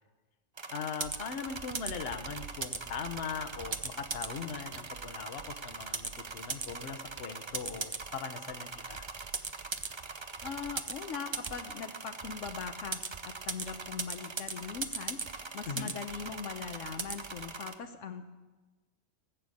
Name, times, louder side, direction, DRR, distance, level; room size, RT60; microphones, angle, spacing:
sound 1, 0.6-17.7, right 4 dB, 30° right, 0.6 m, -40 dB
voice 1, 0.7-9.1 15.7-15.9, left 6 dB, 55° left, 9 dB, 1.2 m, -40 dB
Computer keyboard, 1.0-17.6, right 8 dB, 75° right, 0.3 m, -52 dB
voice 2, 10.4-15.2 15.5-18.3, left 6 dB, 75° left, 6 dB, 1.1 m, -41 dB
19.0 x 7.0 x 8.4 m, 1.2 s
omnidirectional pair, 1.3 m